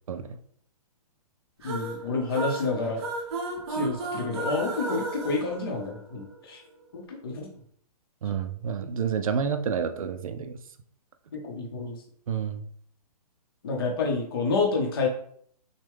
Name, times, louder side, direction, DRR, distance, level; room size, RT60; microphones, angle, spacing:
voice 1, 1.6-3.0 3.7-6.6 6.9-7.5 11.3-12.0 13.6-15.1, left 4 dB, 40° left, 0 dB, 0.8 m, -29 dB
sound 1, 1.6-6.3, right 2 dB, 45° right, 1.2 m, -34 dB
voice 2, 8.2-10.6 12.3-12.7, right 7 dB, 60° right, 8 dB, 0.5 m, -29 dB
6.4 x 2.2 x 3.5 m, 0.62 s
hypercardioid pair, 175°, 20 cm